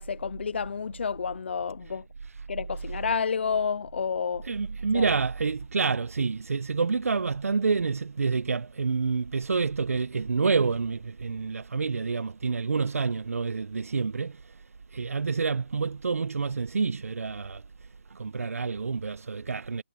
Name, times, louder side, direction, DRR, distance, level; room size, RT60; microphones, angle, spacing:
voice 1, 0.0-2.0 2.5-4.5 4.9-5.1, left 6 dB, 45° left, 0.4 m, -30 dB
voice 2, 4.4-14.6 14.9-19.8, right 4 dB, 70° right, 0.7 m, -28 dB
hypercardioid pair, 165°, 8 cm